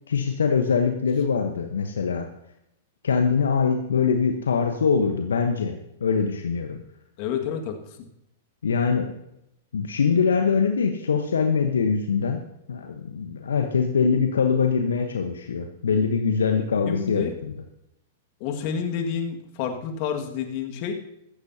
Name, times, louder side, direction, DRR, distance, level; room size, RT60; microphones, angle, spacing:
voice 1, 0.1-2.3 3.0-6.8 8.6-9.1 9.7-12.4 12.7-17.5, left 5 dB, 75° left, 5 dB, 1.1 m, -23 dB
voice 2, 7.2-7.8 16.9-17.3 18.4-20.9, left 7 dB, 50° left, 3 dB, 2.0 m, -29 dB
15.0 x 14.5 x 2.9 m, 0.82 s
figure-of-eight pair, 105°, 0 cm